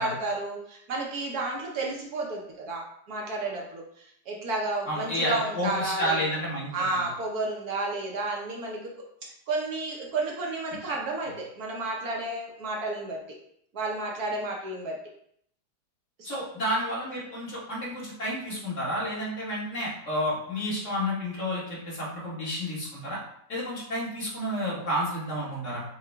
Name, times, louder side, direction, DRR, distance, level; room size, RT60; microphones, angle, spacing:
voice 1, 0.0-6.2 6.7-8.9 9.5-13.2 13.7-15.0 16.2-16.4, right 2 dB, 65° right, -1 dB, 1.2 m, -32 dB
voice 2, 4.9-7.0 16.2-23.2 23.5-25.8, equal, 45° left, -6 dB, 1.8 m, -30 dB
6.5 x 2.4 x 3.4 m, 0.69 s
omnidirectional pair, 1.9 m